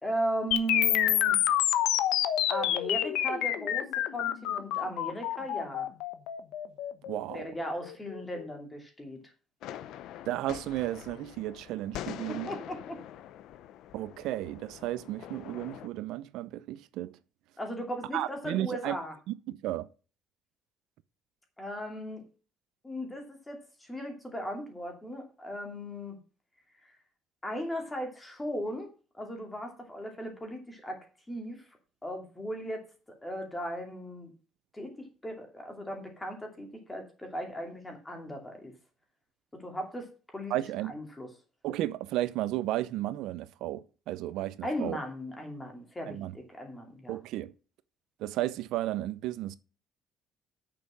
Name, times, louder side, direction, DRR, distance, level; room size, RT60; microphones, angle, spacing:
voice 1, 0.0-1.4 2.5-3.9 4.1-5.9 7.3-9.2 12.3-13.0 17.6-19.1 21.6-22.2 22.8-26.2 27.4-28.9 29.2-31.0 31.3-31.6 32.0-32.8 33.2-34.3 34.7-34.9 35.2-38.7 39.6-40.5 40.8-41.3 44.6-47.1, equal, 10° left, 2.6 m, -37 dB
sound 1, 0.5-8.5, left 11 dB, 90° left, 1.0 m, -28 dB
voice 2, 7.1-7.5 10.3-12.5 13.9-17.2 18.1-19.0 19.3-19.9 40.5-40.9 41.6-45.0 46.1-46.3 47.1-47.5 48.2-49.6, right 15 dB, 75° right, 0.7 m, -33 dB
sound 2, 9.6-15.9, left 11 dB, 70° left, 0.7 m, -44 dB
8.8 x 6.8 x 6.3 m
cardioid pair, 170°, 0 cm